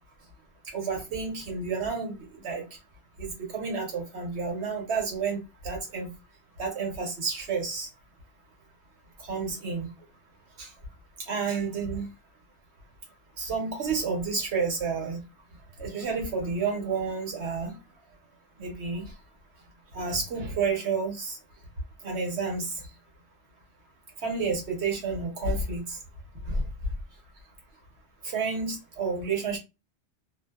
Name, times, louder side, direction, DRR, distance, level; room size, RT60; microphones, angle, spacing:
voice 1, 0.7-2.6 3.2-6.1 6.6-7.9 9.3-9.9 10.6-10.7 11.3-12.1 13.4-15.2 15.8-17.8 18.6-19.0 19.9-21.4 22.0-22.8 24.2-26.0 26.5-26.7 28.2-29.6, right 4 dB, 70° right, 1.2 m, -30 dB
2.6 x 2.1 x 2.2 m
omnidirectional pair, 1.2 m